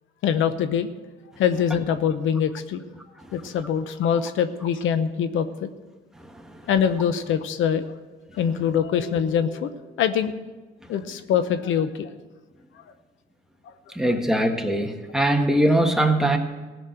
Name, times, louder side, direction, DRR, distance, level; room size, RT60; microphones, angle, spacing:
voice 1, 0.2-0.9 1.4-2.8 3.3-5.7 6.7-7.9 8.3-10.3 10.9-12.1 13.7-13.8 14.0-14.1, left 8 dB, 80° left, 11 dB, 0.8 m, -24 dB
voice 2, 13.9-16.4, right 1 dB, 5° right, 3 dB, 1.5 m, -21 dB
16.0 x 6.3 x 9.1 m, 1.2 s
cardioid pair, 90°, 20 cm